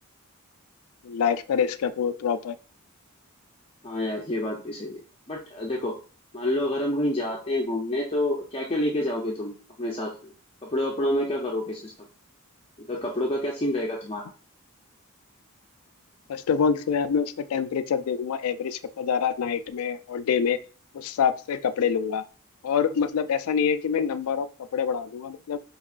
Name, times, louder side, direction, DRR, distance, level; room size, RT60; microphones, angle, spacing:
voice 1, 1.0-2.6 16.3-20.6 20.9-22.2 22.6-25.6, left 7 dB, 80° left, 11 dB, 0.3 m, -26 dB
voice 2, 3.8-5.0 5.3-5.9 6.3-9.5 9.8-10.3 10.6-12.1 12.8-14.2, left 1 dB, 25° left, -1 dB, 0.5 m, -28 dB
4.5 x 2.9 x 2.4 m, 0.38 s
head